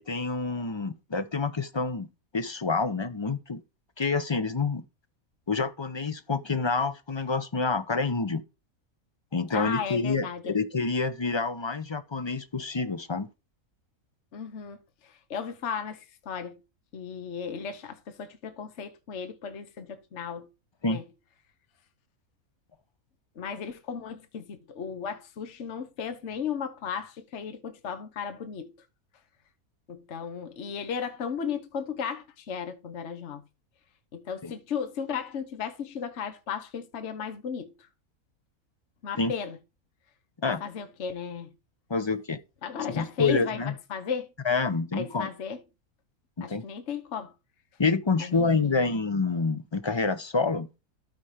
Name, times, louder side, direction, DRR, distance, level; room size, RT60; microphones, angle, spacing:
voice 1, 0.0-2.1 2.3-3.6 4.0-4.8 5.5-8.4 9.3-13.3 20.8-21.0 34.4-34.5 39.2-39.3 40.4-40.6 41.9-42.4 42.9-43.7 44.4-45.3 46.4-46.6 47.8-50.7, left 4 dB, 30° left, 0.5 m, -27 dB
voice 2, 9.5-10.6 14.3-16.6 16.9-20.5 20.9-21.0 23.4-28.7 29.9-33.4 34.1-37.9 39.0-39.6 40.4-41.5 42.6-44.3 44.9-45.6 46.4-47.3 48.2-48.9, left 7 dB, 55° left, 1.3 m, -35 dB
13.0 x 4.4 x 5.0 m
omnidirectional pair, 1.5 m